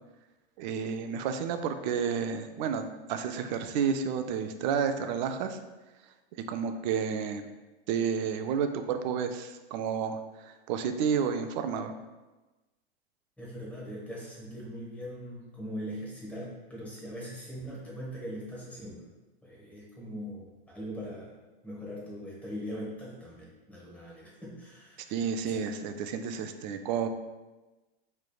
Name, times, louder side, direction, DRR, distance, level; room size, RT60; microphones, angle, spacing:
voice 1, 0.6-5.6 6.5-7.5 7.9-11.9 25.1-27.1, right 7 dB, 45° right, 8 dB, 0.4 m, -31 dB
voice 2, 13.4-19.1 19.4-21.3 21.6-25.7, equal, 5° left, -6 dB, 1.1 m, -41 dB
4.5 x 3.3 x 2.3 m, 1.1 s
hypercardioid pair, 120°, 31 cm